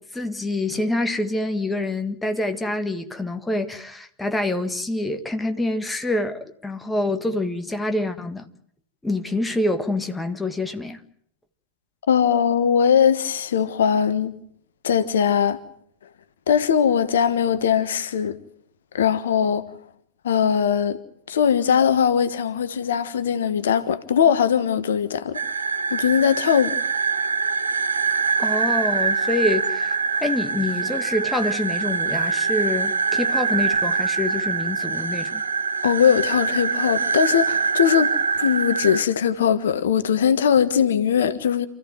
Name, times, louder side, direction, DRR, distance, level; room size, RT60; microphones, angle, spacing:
voice 1, 0.0-8.5 9.0-11.0 28.4-35.4, left 2 dB, 5° left, 1.7 m, -26 dB
voice 2, 12.1-14.3 14.8-15.6 16.5-18.4 18.9-19.7 20.2-21.0 21.3-25.4 25.9-26.8 35.8-38.1 38.4-41.7, left 8 dB, 65° left, 1.3 m, -20 dB
sound 1, 25.3-39.0, right 5 dB, 75° right, 1.0 m, -24 dB
28.0 x 14.5 x 9.1 m
figure-of-eight pair, 90°, 0 cm